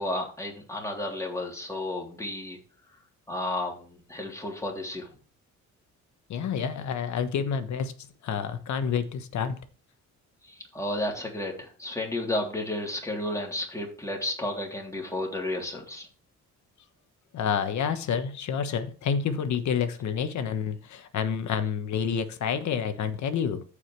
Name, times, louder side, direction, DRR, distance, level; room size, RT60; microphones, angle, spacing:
voice 1, 0.0-2.6 3.3-5.1 10.7-16.1, left 1 dB, 10° left, 3.4 m, -32 dB
voice 2, 6.3-9.6 17.3-23.6, left 7 dB, 70° left, 1.3 m, -29 dB
14.0 x 5.0 x 3.3 m
cardioid pair, 90°, 30 cm